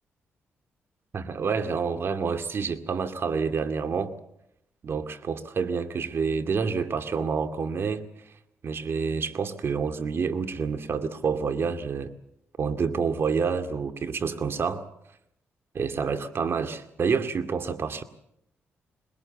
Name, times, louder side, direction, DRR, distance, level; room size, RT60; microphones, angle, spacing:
voice 1, 1.1-4.1 4.8-8.0 8.6-12.1 12.6-14.9 15.7-18.0, right 5 dB, 55° right, 9 dB, 2.2 m, -28 dB
22.0 x 21.0 x 8.2 m, 0.78 s
cardioid pair, 70°, 5 cm